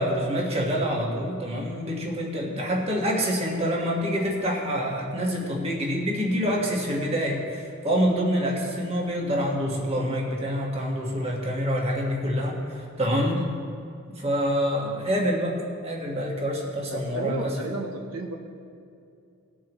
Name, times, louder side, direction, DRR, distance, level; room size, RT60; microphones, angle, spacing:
voice 1, 0.0-13.4 14.2-15.6 15.8-17.5, equal, 25° right, -1 dB, 1.4 m, -26 dB
voice 2, 12.4-12.7 13.1-13.2 16.9-18.3, right 2 dB, 75° right, 1 dB, 0.9 m, -35 dB
18.5 x 7.0 x 3.1 m, 2.5 s
head